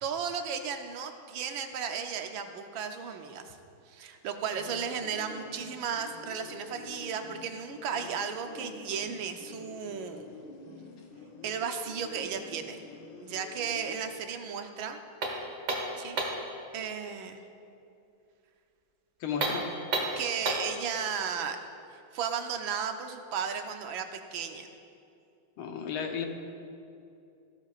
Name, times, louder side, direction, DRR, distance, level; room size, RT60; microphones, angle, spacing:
voice 1, 0.0-3.6 3.9-10.2 11.4-12.8 13.2-15.0 15.9-16.2 16.7-17.4 20.2-21.6 22.1-24.7, right 7 dB, 75° right, 6 dB, 1.4 m, -35 dB
sound 1, 4.6-13.9, left 3 dB, 60° left, 1.7 m, -48 dB
sound 2, 15.2-16.5 19.3-20.8, right 2 dB, 55° right, 1.9 m, -31 dB
voice 2, 19.2-19.7 25.6-26.3, left 7 dB, 85° left, 4 dB, 1.8 m, -33 dB
15.5 x 12.5 x 2.4 m, 2.6 s
omnidirectional pair, 2.2 m